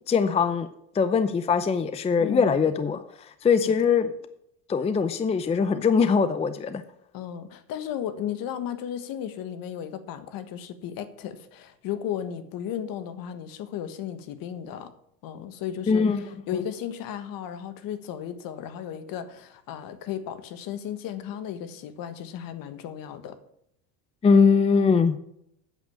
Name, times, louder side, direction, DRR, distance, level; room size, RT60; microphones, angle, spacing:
voice 1, 0.1-0.7 0.9-4.1 4.7-6.8 15.9-16.3 24.2-25.2, left 5 dB, 15° left, 12 dB, 0.5 m, -22 dB
voice 2, 2.2-2.7 3.6-3.8 7.1-14.9 15.2-16.0 16.5-23.4, left 9 dB, 55° left, 11 dB, 1.4 m, -35 dB
9.0 x 7.3 x 7.2 m, 0.73 s
supercardioid pair, 115°, 42 cm